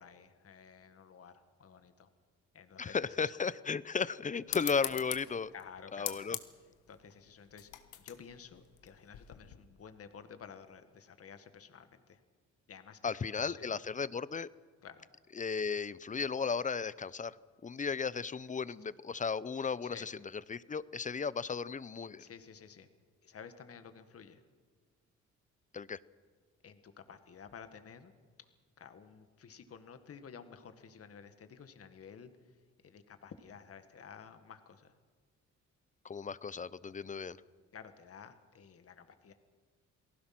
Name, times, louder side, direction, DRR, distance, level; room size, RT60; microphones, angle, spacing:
voice 1, 0.0-2.1 2.5-3.3 5.5-6.4 6.9-7.7 8.0-12.2 12.7-13.8 14.8-15.1 19.8-20.1 22.2-22.9 23.2-24.4 26.6-28.1 28.8-32.3 32.8-35.0 37.7-39.3, left 6 dB, 50° left, 9 dB, 1.9 m, -52 dB
voice 2, 2.8-5.5 5.9-6.4 13.0-14.5 15.4-17.4 17.6-20.1 20.5-22.2 25.7-26.0 36.0-37.4, left 5 dB, 25° left, 18 dB, 0.7 m, -35 dB
sound 1, 4.5-9.6, left 13 dB, 90° left, 1.5 m, -43 dB
28.5 x 18.5 x 6.1 m, 1.5 s
cardioid pair, 90°, 30 cm